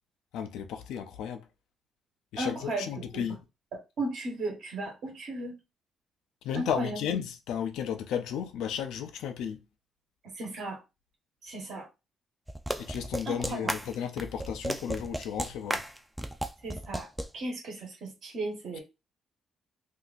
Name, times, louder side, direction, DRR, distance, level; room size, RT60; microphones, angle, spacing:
voice 1, 0.3-1.4 2.3-3.4 6.4-9.6 12.8-15.8, left 8 dB, 85° left, 0.5 m, -34 dB
voice 2, 2.4-3.3 3.7-5.5 6.5-7.0 10.2-10.8 11.4-11.9 13.2-13.7 16.6-18.8, right 2 dB, 70° right, 1.2 m, -36 dB
sound 1, 12.5-17.3, right 1 dB, 5° right, 0.4 m, -34 dB
2.8 x 2.4 x 4.0 m
cardioid pair, 90°, 0 cm